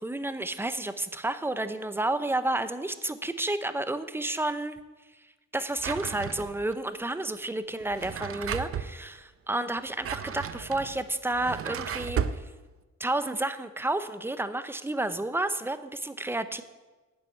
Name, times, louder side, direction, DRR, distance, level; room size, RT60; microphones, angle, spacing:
voice 1, 0.0-4.8 5.5-12.2 13.0-16.6, right 2 dB, 5° right, 12 dB, 0.6 m, -31 dB
Drawer open or close, 5.8-6.7 7.8-8.9 9.8-12.4, right 7 dB, 45° right, 0.6 m, -34 dB
11.0 x 7.6 x 9.1 m, 1.2 s
wide cardioid pair, 150°, 31 cm